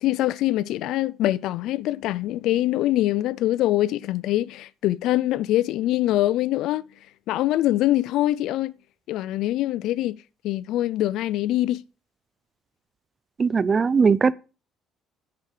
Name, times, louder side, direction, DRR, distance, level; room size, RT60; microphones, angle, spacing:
voice 1, 0.0-6.9 7.3-8.7 9.1-10.2 10.4-11.8, left 14 dB, 75° left, 0.4 m, -24 dB
voice 2, 13.4-14.3, right 5 dB, 30° right, 0.5 m, -19 dB
9.7 x 7.3 x 4.9 m
cardioid pair, 120°, 0 cm